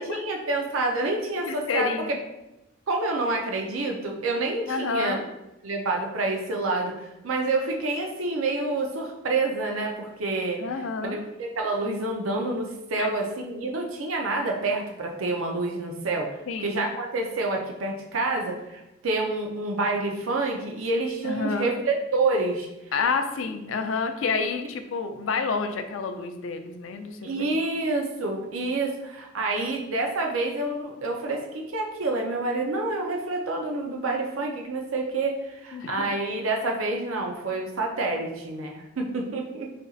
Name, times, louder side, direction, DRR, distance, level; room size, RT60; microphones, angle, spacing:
voice 1, 0.0-1.9 2.9-5.2 5.6-10.6 11.0-16.3 16.6-22.7 27.2-39.7, right 2 dB, 90° right, 1 dB, 0.6 m, -28 dB
voice 2, 1.5-2.2 4.7-5.2 10.6-11.2 13.0-13.1 16.5-16.8 21.2-21.7 22.9-27.5 35.7-36.1, left 4 dB, 75° left, 7 dB, 0.4 m, -29 dB
4.2 x 2.4 x 3.9 m, 0.93 s
head